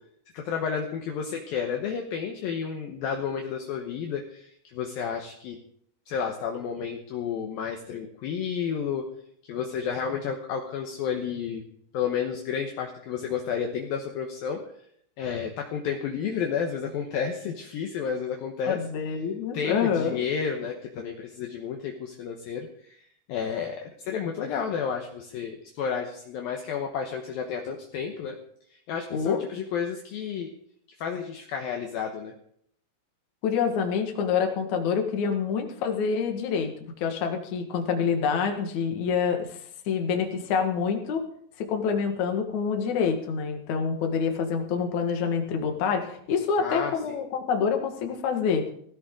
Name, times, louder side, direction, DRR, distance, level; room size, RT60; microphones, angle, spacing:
voice 1, 0.3-5.6 6.1-9.1 9.4-11.6 11.9-14.7 15.2-18.8 19.5-23.0 23.3-28.4 28.7-30.5 31.0-32.3 46.6-46.9, left 7 dB, 70° left, 2 dB, 2.6 m, -31 dB
voice 2, 18.7-20.2 29.1-29.4 33.4-36.7 37.0-39.6 39.9-41.2 41.6-48.6, left 6 dB, 55° left, 4 dB, 2.5 m, -27 dB
16.5 x 16.0 x 3.8 m, 0.67 s
omnidirectional pair, 5.1 m